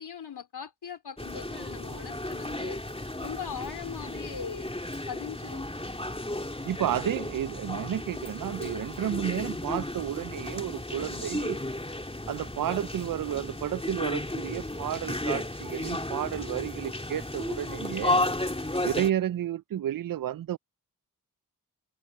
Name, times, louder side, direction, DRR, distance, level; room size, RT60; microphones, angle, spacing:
voice 1, 0.0-2.8 3.2-4.7 5.1-5.7, left 7 dB, 80° left, 3.2 m, -40 dB
sound 1, 1.2-19.1, left 1 dB, 15° left, 2.8 m, -34 dB
voice 2, 6.7-11.6 12.3-18.2 18.8-20.6, right 11 dB, 60° right, 0.5 m, -31 dB
cardioid pair, 45°, 38 cm